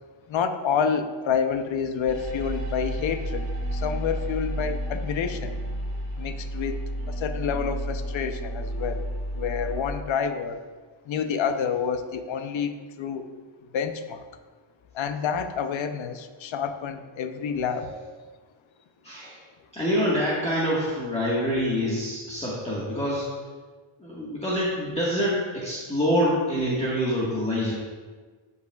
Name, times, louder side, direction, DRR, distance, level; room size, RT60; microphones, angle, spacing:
voice 1, 0.3-5.6 6.2-9.0 9.3-10.6 11.1-13.3 13.7-14.3 14.9-17.9, left 7 dB, 70° left, 8 dB, 0.8 m, -28 dB
sound 1, 2.1-9.8, equal, 45° right, 2.1 m, -31 dB
voice 2, 19.0-19.4 19.7-23.3 24.0-27.7, equal, 15° left, -8 dB, 1.5 m, -26 dB
16.0 x 5.5 x 2.4 m, 1.4 s
cardioid pair, 110°, 48 cm